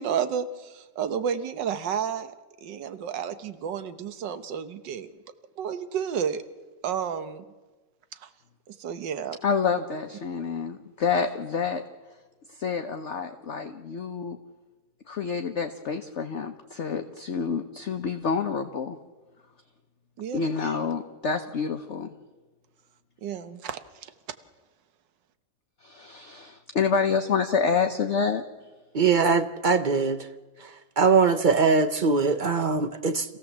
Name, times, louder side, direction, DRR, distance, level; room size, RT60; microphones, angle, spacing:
voice 1, 0.0-2.3 2.6-5.1 5.6-6.4 6.8-7.4 8.2-8.3 8.7-9.4 20.2-20.4 23.2-24.1, right 8 dB, 75° right, 1.7 m, -31 dB
voice 2, 9.4-11.8 12.5-14.4 15.1-19.0 20.3-22.1 25.8-28.4, left 5 dB, 50° left, 1.0 m, -28 dB
voice 3, 28.9-30.2 31.0-33.4, right 5 dB, 45° right, 0.6 m, -22 dB
26.5 x 16.0 x 7.4 m
omnidirectional pair, 2.0 m